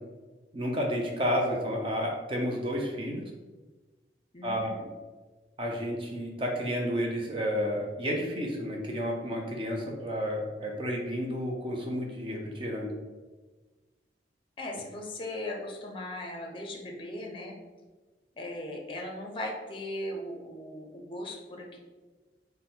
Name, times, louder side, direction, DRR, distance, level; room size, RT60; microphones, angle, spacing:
voice 1, 0.5-3.2 4.4-4.7 5.6-12.9, equal, 30° right, 0 dB, 0.5 m, -31 dB
voice 2, 4.3-4.9 14.6-17.5 18.4-21.8, left 1 dB, 30° left, 1 dB, 0.6 m, -38 dB
4.2 x 2.1 x 3.7 m, 1.3 s
head